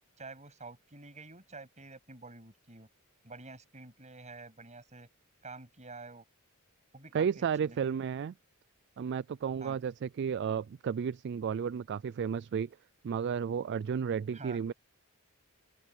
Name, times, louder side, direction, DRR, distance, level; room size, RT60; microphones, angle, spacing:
voice 1, 0.2-2.9 3.2-5.1 5.4-6.2 6.9-8.0 9.6-9.8 14.3-14.6, right 3 dB, 30° right, 7.8 m, -48 dB
voice 2, 7.1-8.3 9.0-12.7 13.0-14.7, right 7 dB, 50° right, 0.3 m, -32 dB
open air
head